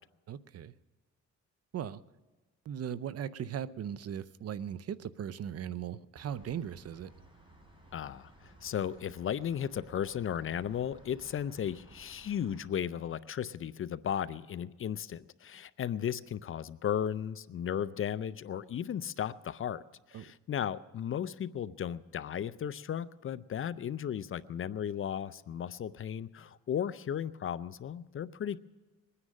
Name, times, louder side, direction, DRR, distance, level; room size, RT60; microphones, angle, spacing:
voice 1, 0.3-0.7 1.7-2.0 2.7-7.1 20.1-20.2, right 9 dB, 55° right, 16 dB, 0.6 m, -38 dB
sound 1, 6.1-12.6, right 1 dB, 15° right, 5.2 m, -57 dB
voice 2, 7.9-19.8 20.1-28.6, left 9 dB, 45° left, 16 dB, 0.5 m, -35 dB
22.0 x 9.8 x 6.4 m, 1.2 s
cardioid pair, 90°, 30 cm